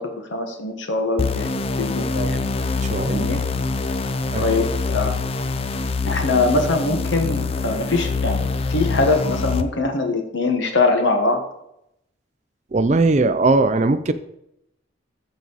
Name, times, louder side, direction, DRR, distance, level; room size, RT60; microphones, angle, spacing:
voice 1, 0.3-1.5 1.8-2.4 3.1-3.4 4.4-5.1 6.1-11.4, left 3 dB, 75° left, 4 dB, 1.5 m, -22 dB
sound 1, 1.2-9.6, left 3 dB, 30° left, 0.4 m, -25 dB
voice 2, 2.8-3.3 4.3-4.4 12.7-14.1, right 3 dB, 35° right, 11 dB, 0.4 m, -19 dB
14.0 x 4.7 x 4.1 m, 0.80 s
head